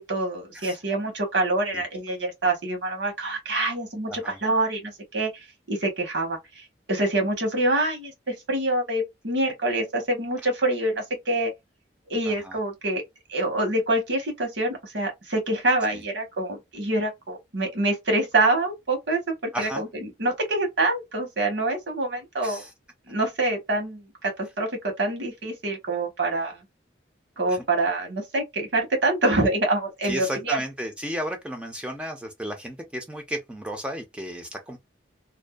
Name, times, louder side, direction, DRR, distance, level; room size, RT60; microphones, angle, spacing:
voice 1, 0.0-11.5 12.1-13.0 13.3-22.6 23.1-26.6 27.4-30.6, right 2 dB, 75° right, 1.2 m, -26 dB
voice 2, 12.3-12.6 19.5-19.8 22.4-22.7 27.5-27.6 30.0-34.8, equal, 5° right, 0.4 m, -33 dB
2.5 x 2.2 x 2.2 m
head